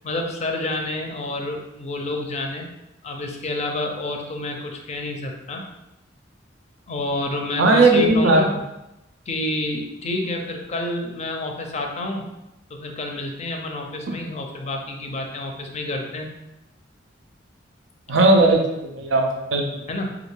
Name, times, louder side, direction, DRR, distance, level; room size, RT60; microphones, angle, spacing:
voice 1, 0.0-2.7 3.0-5.6 6.9-8.5 9.3-12.3 12.7-16.3 19.9-20.2, left 2 dB, 35° left, 2 dB, 0.5 m, -28 dB
voice 2, 7.6-8.4 14.1-14.2 18.1-19.8, right 2 dB, 80° right, 2 dB, 0.4 m, -17 dB
3.3 x 2.4 x 3.2 m, 0.91 s
head